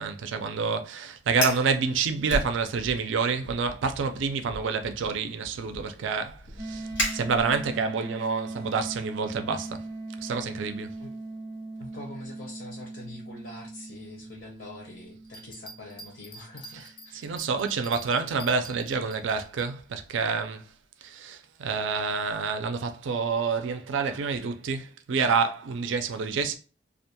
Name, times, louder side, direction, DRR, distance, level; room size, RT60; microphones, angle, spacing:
voice 1, 0.0-9.8 10.2-10.9 17.2-20.7 21.0-26.5, right 5 dB, 70° right, 0.4 m, -28 dB
Fire, 1.3-1.7 2.3-3.1 3.4-3.8 4.4-7.8, equal, 85° left, 1.1 m, -33 dB
sound 1, 6.6-17.3, right 2 dB, 25° right, 0.6 m, -40 dB
voice 2, 11.8-17.3, left 2 dB, 65° left, 0.6 m, -44 dB
sound 2, 15.2-19.7, right 1 dB, 25° left, 0.3 m, -46 dB
2.4 x 2.2 x 2.8 m
head